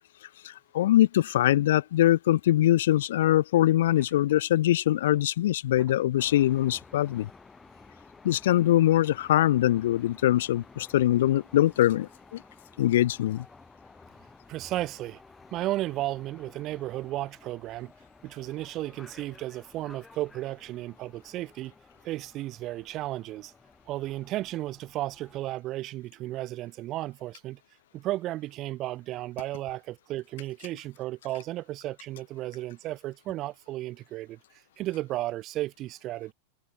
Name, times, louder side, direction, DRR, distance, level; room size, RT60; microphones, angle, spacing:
voice 1, 0.4-7.3 8.2-12.4 12.8-13.4, left 13 dB, 55° left, 0.3 m, -23 dB
sound 1, 6.2-25.6, left 3 dB, 10° left, 2.2 m, -54 dB
voice 2, 14.5-15.2 15.5-17.9 18.2-21.7 22.0-23.5 23.9-27.6 27.9-34.4 34.8-36.3, right 16 dB, 35° right, 1.3 m, -34 dB
open air
figure-of-eight pair, 90°, 0 cm